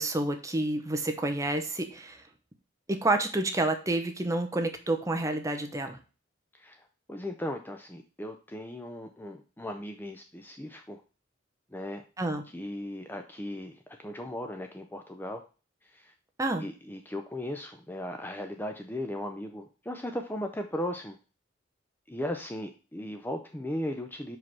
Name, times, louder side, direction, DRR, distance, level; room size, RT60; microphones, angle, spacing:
voice 1, 0.0-2.2 2.9-6.0 12.2-12.4 16.4-16.6, right 2 dB, 15° right, 5 dB, 0.9 m, -29 dB
voice 2, 6.5-11.0 11.7-12.0 12.5-15.4 15.8-16.1 16.6-21.2 22.1-24.4, left 1 dB, 10° left, 5 dB, 0.5 m, -37 dB
5.8 x 5.1 x 4.6 m, 0.33 s
head